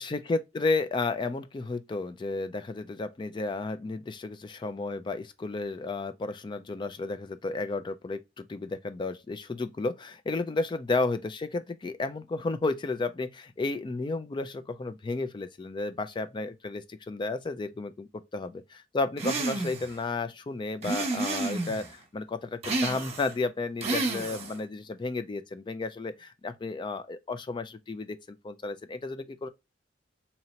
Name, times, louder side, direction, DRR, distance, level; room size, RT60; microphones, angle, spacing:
voice 1, 0.0-29.5, left 3 dB, 25° left, 0.3 m, -32 dB
sound 1, 19.2-19.9 20.8-21.9 22.6-23.3 23.8-24.6, right 3 dB, 35° right, 1.0 m, -30 dB
2.9 x 2.8 x 4.1 m
head